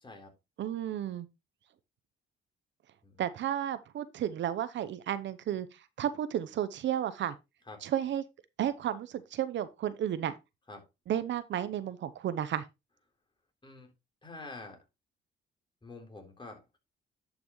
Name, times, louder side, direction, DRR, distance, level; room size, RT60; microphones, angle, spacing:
voice 1, 0.6-1.3 3.2-7.3 7.8-8.2 8.6-10.3 11.1-12.6, right 10 dB, 65° right, 0.8 m, -33 dB
voice 2, 14.2-14.8 15.8-16.8, left 3 dB, 25° left, 3.7 m, -47 dB
11.0 x 6.0 x 3.1 m
cardioid pair, 90°, 20 cm